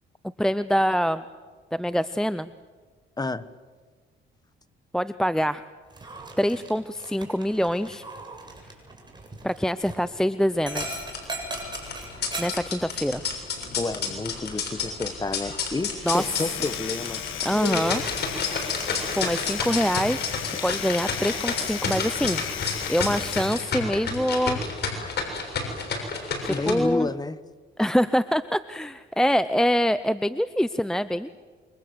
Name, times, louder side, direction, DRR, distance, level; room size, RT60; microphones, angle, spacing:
voice 1, 0.4-1.2 1.7-2.5 4.9-5.6 6.4-8.0 9.4-11.0 12.4-13.2 16.1-16.2 17.4-18.0 19.2-20.3 20.6-22.4 22.9-24.6 26.4-27.1 27.8-31.3, equal, 5° left, 13 dB, 0.7 m, -25 dB
voice 2, 3.2-3.5 13.8-17.2 26.5-27.4, left 3 dB, 20° left, 14 dB, 1.3 m, -30 dB
Dog, 5.9-22.5, right 2 dB, 20° right, 7.5 m, -42 dB
sound 1, 10.7-26.7, left 4 dB, 55° left, 6.9 m, -31 dB
Domestic sounds home sounds, 15.9-23.8, left 10 dB, 80° left, 1.8 m, -35 dB
27.5 x 24.5 x 7.9 m, 1.5 s
cardioid pair, 90°, 20 cm